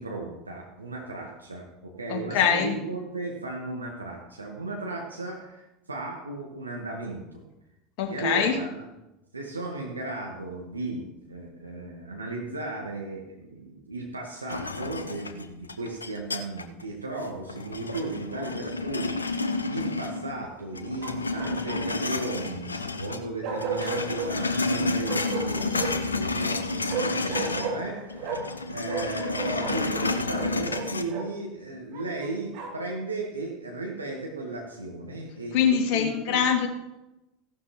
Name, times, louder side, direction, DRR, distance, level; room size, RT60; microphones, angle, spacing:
voice 1, 0.0-7.4 8.1-8.8 9.3-36.4, right 2 dB, 80° right, 0 dB, 1.6 m, -35 dB
voice 2, 2.1-2.7 8.0-8.6 35.5-36.7, left 8 dB, 50° left, 3 dB, 2.2 m, -23 dB
sound 1, 14.5-16.8 17.2-20.4 20.7-23.2 23.5-27.8 28.1-31.0, left 3 dB, 80° left, 0.7 m, -30 dB
Bark, 17.9-18.5 21.0-22.1 23.4-24.3 25.0-26.1 26.9-28.6 28.9-31.3 31.9-32.9, right 4 dB, 50° right, 2.6 m, -34 dB
15.5 x 12.0 x 3.1 m, 0.97 s
figure-of-eight pair, 75°, 0 cm